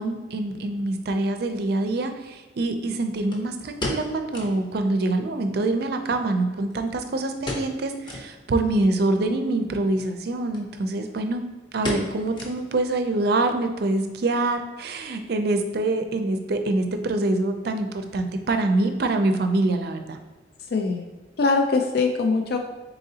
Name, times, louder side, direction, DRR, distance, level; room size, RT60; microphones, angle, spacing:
voice 1, 0.0-11.4 11.7-20.2, right 2 dB, 60° right, 7 dB, 0.4 m, -25 dB
sound 1, 1.2-1.3 3.3-4.7 5.0-5.1 5.4-5.5 6.1-7.0 7.4-8.3 8.8-8.9 9.9-10.1 10.5-10.7 10.9-11.3 11.8-12.9 13.2-13.3 13.9-14.2 14.5-14.6, left 1 dB, 25° left, 0.7 m, -33 dB
voice 2, 20.7-21.1 21.4-22.6, left 4 dB, 60° left, 3 dB, 0.4 m, -22 dB
4.0 x 3.7 x 2.7 m, 1.1 s
head